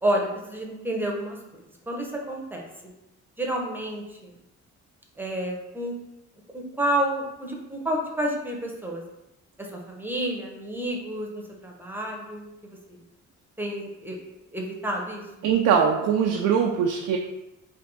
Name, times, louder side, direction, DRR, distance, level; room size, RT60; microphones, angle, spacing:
voice 1, 0.0-1.4 1.9-2.9 3.4-4.4 5.2-5.9 6.5-9.0 9.6-11.3 11.6-13.0 13.6-14.2 14.5-15.5, right 1 dB, 5° right, 0 dB, 0.8 m, -30 dB
voice 2, 15.4-17.2, right 7 dB, 80° right, 1 dB, 0.5 m, -21 dB
3.4 x 2.5 x 3.9 m, 0.93 s
cardioid pair, 90°, 30 cm